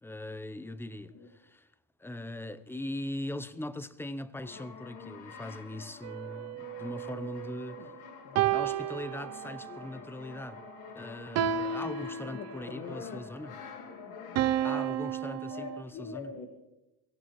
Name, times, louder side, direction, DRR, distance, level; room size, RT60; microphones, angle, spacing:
voice 1, 0.0-1.7 2.0-7.9 8.5-10.6 10.9-13.6 14.6-16.3, left 1 dB, 5° left, 0.7 m, -40 dB
Brass instrument, 4.3-15.1, left 6 dB, 85° left, 1.9 m, -47 dB
sound 1, 6.0-7.8 8.4-9.8 11.4-12.8 14.4-15.8, right 10 dB, 55° right, 0.6 m, -32 dB
voice 2, 8.2-8.6 12.2-13.2 14.1-14.5 15.5-16.5, left 5 dB, 65° left, 1.8 m, -44 dB
23.5 x 17.0 x 3.1 m
cardioid pair, 110°, 30 cm